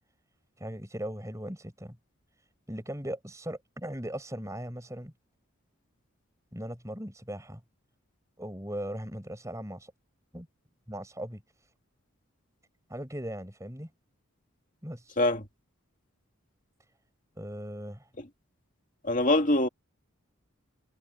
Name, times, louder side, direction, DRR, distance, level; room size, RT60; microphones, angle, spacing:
voice 1, 0.6-2.0 2.7-5.1 6.5-7.6 8.4-9.9 10.3-10.5 10.9-11.4 12.9-13.9 14.8-15.2 17.4-18.1, right 1 dB, 15° right, 6.1 m, -38 dB
voice 2, 19.0-19.7, left 1 dB, 40° left, 2.2 m, -24 dB
head